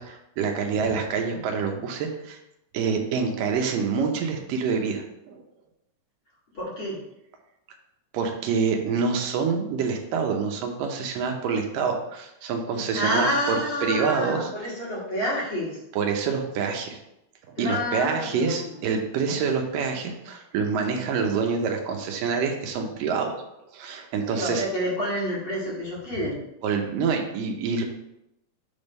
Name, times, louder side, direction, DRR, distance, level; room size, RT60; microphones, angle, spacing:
voice 1, 0.0-2.4 2.7-5.4 8.1-14.5 16.0-17.0 17.5-23.3 23.7-24.6 26.6-27.8, right 5 dB, 85° right, 3 dB, 2.5 m, -26 dB
voice 2, 6.5-7.0 12.9-15.8 17.6-18.8 24.3-26.4, equal, 40° left, -7 dB, 2.8 m, -28 dB
6.8 x 3.6 x 5.3 m, 0.85 s
omnidirectional pair, 3.8 m